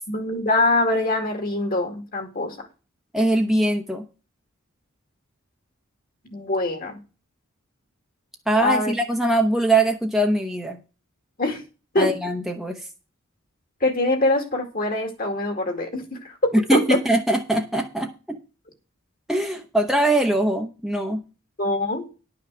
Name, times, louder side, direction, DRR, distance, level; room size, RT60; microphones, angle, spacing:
voice 1, 0.1-2.7 6.3-7.0 8.6-8.9 11.4-11.6 11.9-12.1 13.8-16.8 21.6-22.1, left 2 dB, 45° left, 4 dB, 2.3 m, -23 dB
voice 2, 3.1-4.0 8.5-10.8 12.0-12.9 16.5-18.4 19.3-21.2, right 1 dB, ahead, 2 dB, 1.0 m, -22 dB
11.5 x 5.8 x 6.2 m, 0.33 s
head